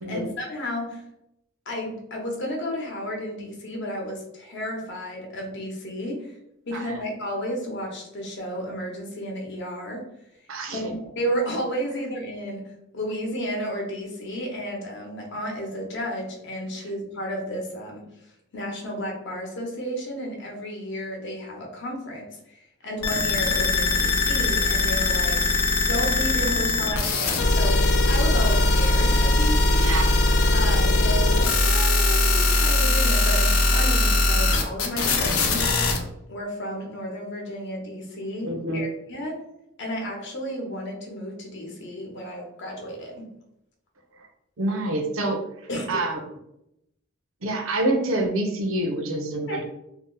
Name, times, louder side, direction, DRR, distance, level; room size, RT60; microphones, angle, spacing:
voice 1, 0.1-1.0 1.7-6.3 6.7-10.0 10.7-18.0 18.5-25.4 25.9-27.8 28.1-29.9 30.5-35.7 36.3-39.4 39.8-43.3 45.7-46.0 49.5-49.6, equal, 60° left, 0 dB, 0.8 m, -32 dB
voice 2, 6.7-7.0 10.5-10.8 29.8-30.1 38.4-38.9 44.2-44.3 44.6-45.4 45.9-46.2 47.4-49.6, right 2 dB, 70° right, 3 dB, 0.6 m, -27 dB
sound 1, 23.0-36.0, left 2 dB, 85° left, 0.5 m, -21 dB
2.7 x 2.0 x 3.7 m, 0.82 s
head